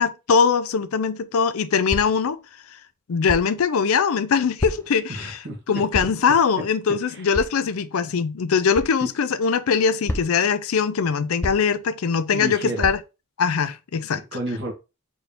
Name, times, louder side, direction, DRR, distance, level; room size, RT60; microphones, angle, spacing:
voice 1, 0.0-2.4 3.1-13.0 13.4-14.2, left 6 dB, 80° left, 0.4 m, -22 dB
sound 1, 1.9-2.3 3.3-3.5 4.6-5.0 5.9-6.3 7.3-7.6 8.7-8.9 10.1-10.5 11.4-11.8 12.8-13.0, left 1 dB, 10° left, 0.3 m, -30 dB
voice 2, 5.1-6.1 7.1-7.2 9.0-9.1 12.3-12.9 14.2-14.7, right 1 dB, 55° right, 1.4 m, -31 dB
4.2 x 2.7 x 3.3 m
head